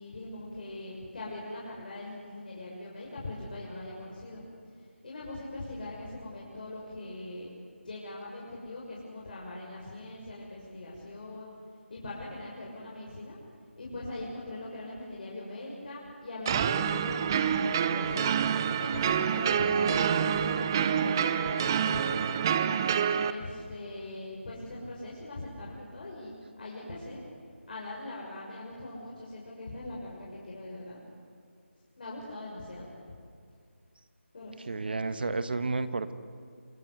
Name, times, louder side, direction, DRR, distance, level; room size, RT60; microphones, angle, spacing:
voice 1, 0.0-4.4 4.8-7.5 7.8-11.5 11.9-13.4 13.8-18.3 18.8-22.4 23.2-27.2 27.7-31.0 32.0-33.2 34.3-34.7, left 2 dB, 45° left, -4 dB, 6.4 m, -41 dB
sound 1, 16.5-23.3, right 8 dB, 20° right, 0.6 m, -27 dB
voice 2, 34.7-36.1, right 3 dB, 50° right, 12 dB, 1.5 m, -31 dB
28.0 x 21.0 x 8.2 m, 2.4 s
figure-of-eight pair, 160°, 7 cm